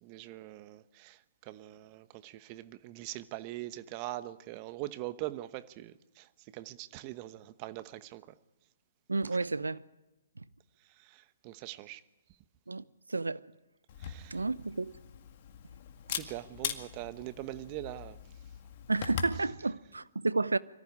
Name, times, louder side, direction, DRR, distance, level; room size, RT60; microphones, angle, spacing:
voice 1, 0.0-8.4 9.3-9.4 10.8-12.0 14.0-14.4 16.1-18.2, right 16 dB, 35° right, 1.1 m, -43 dB
voice 2, 9.1-9.8 12.7-12.8 13.1-13.4 14.3-14.9 18.9-20.6, right 3 dB, 90° right, 0.7 m, -31 dB
Camera, 13.9-19.4, left 8 dB, 45° left, 2.0 m, -41 dB
24.0 x 14.5 x 9.9 m
figure-of-eight pair, 130°, 0 cm